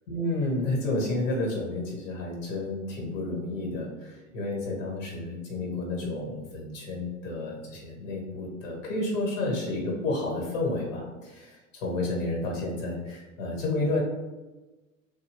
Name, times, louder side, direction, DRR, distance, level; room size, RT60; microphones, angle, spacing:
voice 1, 0.1-14.0, left 2 dB, 70° left, -1 dB, 1.2 m, -31 dB
2.7 x 2.2 x 2.9 m, 1.1 s
hypercardioid pair, 85°, 40 cm